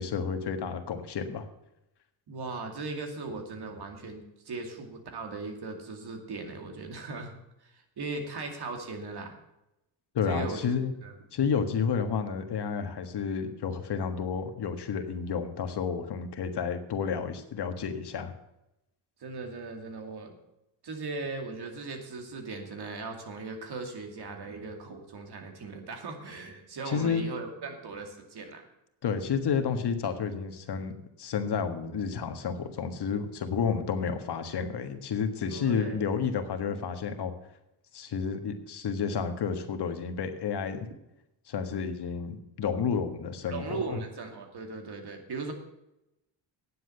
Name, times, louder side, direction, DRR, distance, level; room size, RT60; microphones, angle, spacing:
voice 1, 0.0-1.5 10.1-10.9 11.3-18.3 26.9-27.2 29.0-30.9 31.2-37.3 37.9-40.9 41.5-44.0, left 6 dB, 60° left, 7 dB, 1.6 m, -31 dB
voice 2, 2.3-7.3 7.6-9.3 10.3-10.7 11.0-11.1 19.2-20.4 20.8-28.6 35.5-36.1 43.5-45.5, right 3 dB, 60° right, 4 dB, 2.6 m, -38 dB
9.9 x 7.7 x 7.7 m, 0.88 s
cardioid pair, 85°, 44 cm